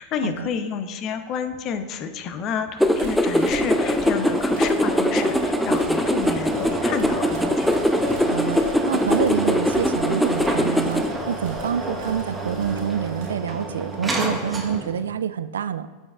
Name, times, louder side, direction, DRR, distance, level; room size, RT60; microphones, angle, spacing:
voice 1, 0.0-7.7, left 6 dB, 45° left, 9 dB, 0.7 m, -30 dB
sound 1, 2.8-11.1, equal, ahead, 0.6 m, -22 dB
sound 2, 2.8-13.3, right 3 dB, 65° right, 1.9 m, -39 dB
sound 3, 3.3-15.1, right 1 dB, 15° right, 1.2 m, -31 dB
voice 2, 8.2-15.9, right 8 dB, 80° right, 14 dB, 0.3 m, -27 dB
13.5 x 5.3 x 2.4 m, 1.4 s
hypercardioid pair, 90°, 0 cm